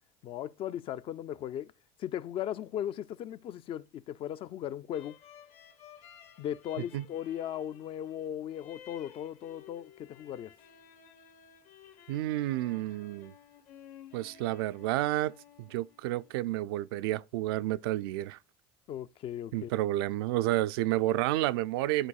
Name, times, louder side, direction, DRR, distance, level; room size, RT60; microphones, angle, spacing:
voice 1, 0.2-1.7 2.0-5.2 6.4-10.5 18.9-19.7, left 10 dB, 45° left, 0.4 m, -37 dB
sound 1, 4.9-16.3, left 9 dB, 65° left, 1.5 m, -55 dB
voice 2, 12.1-13.3 14.1-18.4 19.5-22.1, right 15 dB, 85° right, 0.4 m, -30 dB
11.0 x 4.0 x 2.3 m
supercardioid pair, 100°, 12 cm